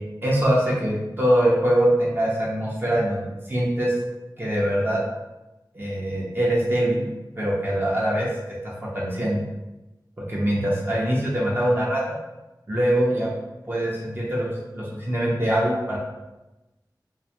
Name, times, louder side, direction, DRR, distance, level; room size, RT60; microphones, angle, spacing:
voice 1, 0.2-3.9 4.4-5.0 5.7-7.1 7.4-8.3 8.6-9.4 10.2-12.2 12.7-13.3 13.7-14.5 14.7-16.0, right 1 dB, 30° right, -5 dB, 0.5 m, -23 dB
2.4 x 2.2 x 2.7 m, 1.0 s
wide cardioid pair, 70°, 8 cm